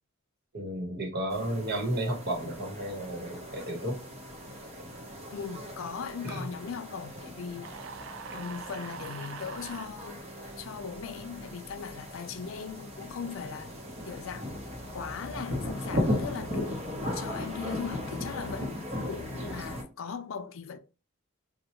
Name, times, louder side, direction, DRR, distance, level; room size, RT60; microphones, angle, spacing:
voice 1, 0.5-4.0 6.2-6.4 17.0-17.2, right 1 dB, 50° right, 1.1 m, -33 dB
sound 1, 1.3-19.8, left 1 dB, 30° right, 0.9 m, -37 dB
voice 2, 5.3-7.7 8.3-10.2 10.6-13.8 14.1-14.5 14.9-16.8 17.1-20.8, left 6 dB, 70° left, 0.4 m, -39 dB
sound 2, 7.6-9.9, right 5 dB, 70° right, 0.4 m, -43 dB
4.2 x 2.2 x 2.9 m
head